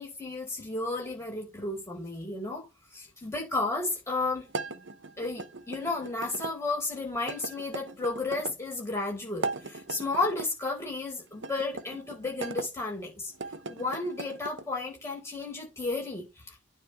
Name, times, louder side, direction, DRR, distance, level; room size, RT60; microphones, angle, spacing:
voice 1, 0.0-4.5 5.2-13.3 13.7-16.6, left 3 dB, 15° left, 4.5 m, -33 dB
sound 1, 4.5-6.5 7.3-8.6 9.3-10.5 11.4-12.7 13.3-14.7, right 3 dB, 60° right, 0.9 m, -38 dB
9.4 x 3.9 x 6.6 m
head